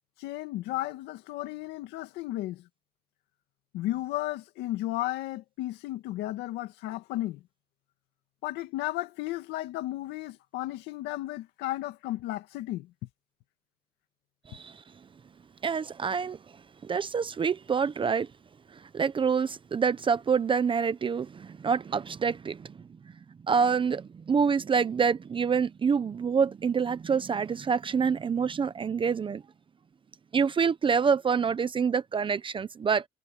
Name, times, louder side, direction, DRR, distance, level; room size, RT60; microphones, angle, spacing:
voice 1, 0.2-2.7 3.7-7.4 8.4-12.9, left 16 dB, 90° left, 2.1 m, -34 dB
voice 2, 14.5-14.8 15.6-16.4 16.8-18.3 18.7-22.7 23.4-29.4 30.3-33.0, right 6 dB, 30° right, 0.8 m, -27 dB
cardioid pair, 110°, 17 cm